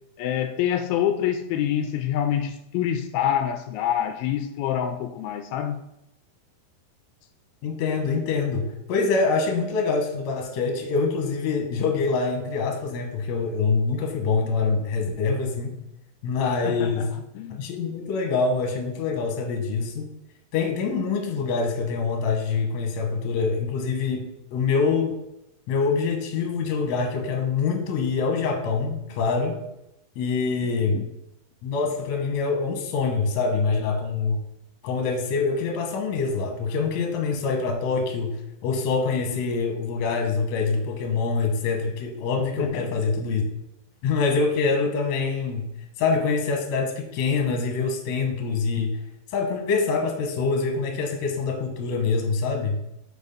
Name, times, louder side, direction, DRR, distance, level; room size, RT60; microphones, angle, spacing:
voice 1, 0.2-5.8 16.6-17.1 17.4-17.6 30.9-31.1 42.6-43.0, left 10 dB, 85° left, 2.4 m, -26 dB
voice 2, 7.6-15.7 16.2-17.0 17.6-20.1 20.5-24.3 24.5-25.1 25.7-29.5 30.2-31.1 31.6-34.4 34.8-38.4 38.6-43.4 44.0-45.7 46.0-48.9 49.3-52.8, left 4 dB, 60° left, 2.1 m, -25 dB
6.4 x 5.0 x 5.3 m
omnidirectional pair, 4.3 m